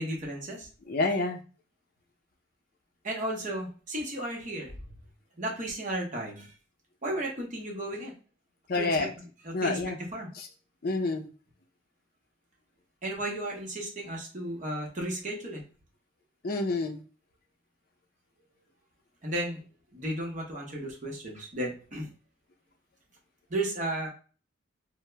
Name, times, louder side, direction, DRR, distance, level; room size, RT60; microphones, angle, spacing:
voice 1, 0.0-0.7 3.0-4.7 5.4-6.5 7.0-8.1 8.7-8.9 9.4-9.8 10.1-10.3 13.0-15.6 19.2-19.6 19.9-22.1 23.5-24.1, right 1 dB, 40° right, 0 dB, 0.8 m, -34 dB
voice 2, 0.9-1.4 8.7-9.1 9.5-10.0 10.4-10.5 10.8-11.2 16.4-17.0, left 3 dB, 50° left, 3 dB, 0.5 m, -28 dB
2.8 x 2.1 x 3.2 m, 0.38 s
head